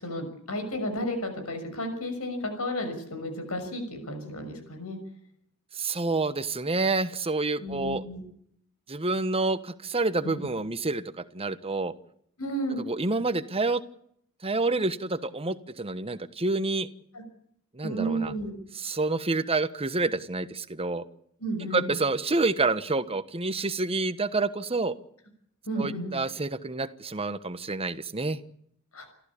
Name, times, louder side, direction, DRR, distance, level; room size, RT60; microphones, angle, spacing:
voice 1, 0.0-5.0 7.6-8.2 10.2-10.3 12.4-12.8 17.1-17.2 17.8-18.5 21.4-21.9 25.6-26.1 28.9-29.1, equal, 75° left, 8 dB, 6.2 m, -32 dB
voice 2, 5.7-8.0 8.9-11.9 12.9-13.8 14.4-16.9 17.7-18.3 18.7-21.0 21.7-24.9 25.8-28.4, right 3 dB, 25° right, 12 dB, 1.2 m, -28 dB
29.0 x 14.0 x 8.6 m, 0.70 s
head